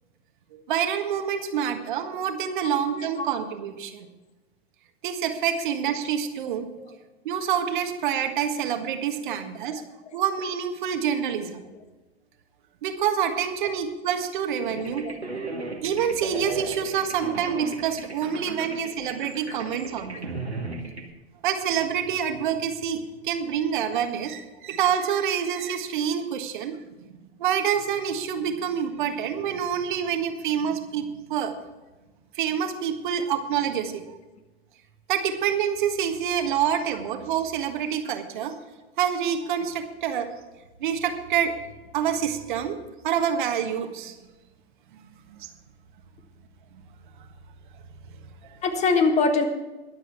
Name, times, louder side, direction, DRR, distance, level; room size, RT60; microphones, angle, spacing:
voice 1, 0.5-4.1 5.0-6.7 7.2-9.9 10.1-11.6 12.8-15.1 15.8-20.2 21.4-26.7 27.4-31.5 32.3-34.0 35.1-38.5 39.0-40.3 40.8-41.5 41.9-42.8 43.0-44.2 45.3-45.5, right 8 dB, 50° right, 6 dB, 1.6 m, -27 dB
voice 2, 2.6-3.3 6.8-6.9 9.7-9.8 14.8-15.1 48.6-49.4, left 4 dB, 20° left, 7 dB, 1.4 m, -24 dB
sound 1, 14.7-21.1, right 2 dB, 90° right, 2.1 m, -36 dB
22.0 x 7.9 x 4.6 m, 1.1 s
figure-of-eight pair, 100°, 31 cm